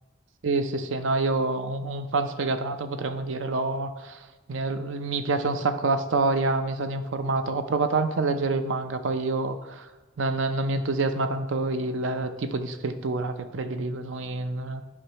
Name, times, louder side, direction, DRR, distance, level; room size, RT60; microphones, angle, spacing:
voice 1, 0.4-9.9 10.2-14.8, right 3 dB, 70° right, 9 dB, 0.6 m, -27 dB
9.8 x 5.5 x 2.9 m, 1.2 s
head